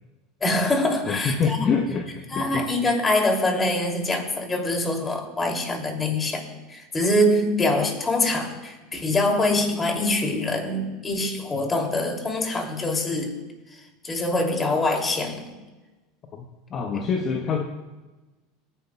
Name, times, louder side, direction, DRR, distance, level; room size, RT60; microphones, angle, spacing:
voice 1, 0.4-1.6 2.3-13.4 14.0-15.4 17.0-17.1, left 1 dB, 20° left, 3 dB, 2.6 m, -24 dB
voice 2, 1.0-2.7 16.3-17.6, left 5 dB, 40° left, 3 dB, 1.0 m, -26 dB
25.5 x 10.0 x 2.3 m, 1.2 s
hypercardioid pair, 85°, 0 cm